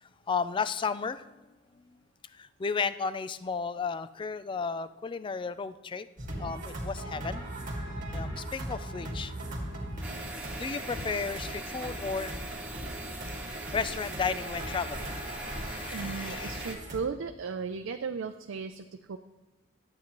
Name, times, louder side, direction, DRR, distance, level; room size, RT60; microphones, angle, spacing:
voice 1, 0.0-1.3 2.3-6.1 6.4-7.5 8.1-9.3 10.2-10.3 10.6-12.3 13.4-16.8, left 5 dB, 25° left, 14 dB, 0.3 m, -34 dB
sound 1, 6.2-17.0, right 1 dB, 45° right, 1.8 m, -39 dB
sound 2, 10.0-16.7, right 1 dB, 5° right, 1.4 m, -40 dB
voice 2, 15.9-19.2, right 5 dB, 85° right, 7 dB, 0.4 m, -36 dB
12.0 x 8.4 x 3.0 m, 1.1 s
head